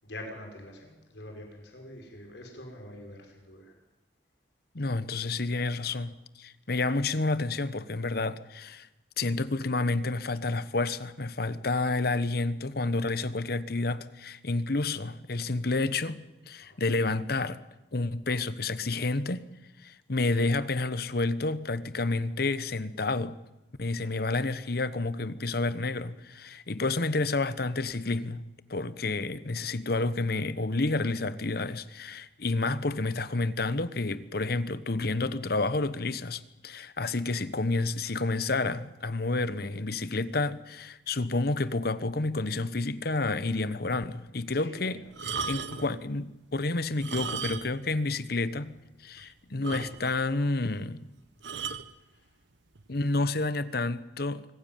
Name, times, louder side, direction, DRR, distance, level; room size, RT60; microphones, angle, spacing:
voice 1, 0.0-3.8 5.8-6.0 16.6-16.8 44.5-45.1 45.3-45.5 52.0-52.3, left 1 dB, 75° left, 5.9 m, -45 dB
voice 2, 4.7-8.9 9.2-17.6 17.9-19.5 19.8-23.4 23.8-28.4 28.7-45.0 45.4-51.1 52.9-54.5, left 3 dB, 60° left, 1.1 m, -30 dB
sound 1, 45.1-46.0 46.9-47.9 48.2-48.3 48.8-48.9 49.2-49.3 49.6-50.3 51.4-51.9 52.8-53.0, right 5 dB, 85° right, 1.3 m, -36 dB
24.5 x 15.5 x 9.2 m
head